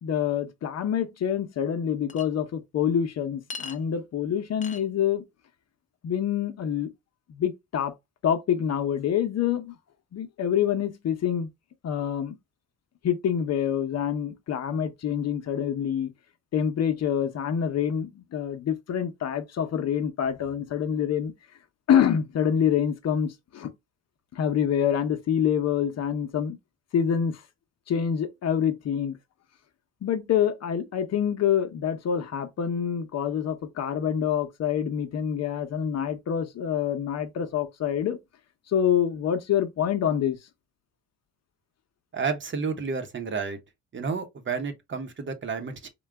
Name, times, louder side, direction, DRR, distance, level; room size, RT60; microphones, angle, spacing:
voice 1, 0.0-5.2 6.0-6.9 7.3-7.9 8.2-9.7 10.1-11.5 11.8-12.4 13.0-16.1 16.5-21.3 21.9-23.7 24.3-26.6 26.9-27.4 27.9-29.2 30.0-38.2 38.7-40.4, left 9 dB, 60° left, 0.8 m, -26 dB
Chink clink, 2.1-2.3 3.5-3.8 4.6-4.8, left 4 dB, 25° left, 0.6 m, -37 dB
voice 2, 42.1-43.6 43.9-45.9, right 5 dB, 40° right, 0.9 m, -31 dB
3.8 x 2.2 x 3.4 m
cardioid pair, 90°, 30 cm